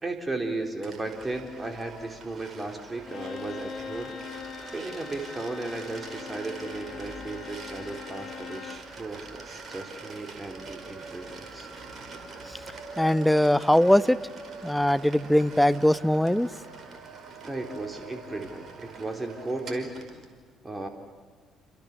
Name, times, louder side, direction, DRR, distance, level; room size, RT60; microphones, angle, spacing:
voice 1, 0.0-4.2 4.7-11.7 17.5-19.9 20.6-20.9, right 2 dB, 20° right, 4 dB, 3.5 m, -35 dB
sound 1, 0.8-20.3, right 4 dB, 40° right, 5.0 m, -44 dB
Bowed string instrument, 3.0-8.9, left 7 dB, 50° left, 1.7 m, -41 dB
voice 2, 13.0-14.2 14.6-16.5, left 1 dB, 5° left, 13 dB, 0.9 m, -21 dB
29.0 x 26.5 x 7.2 m, 1.5 s
figure-of-eight pair, 50°, 0 cm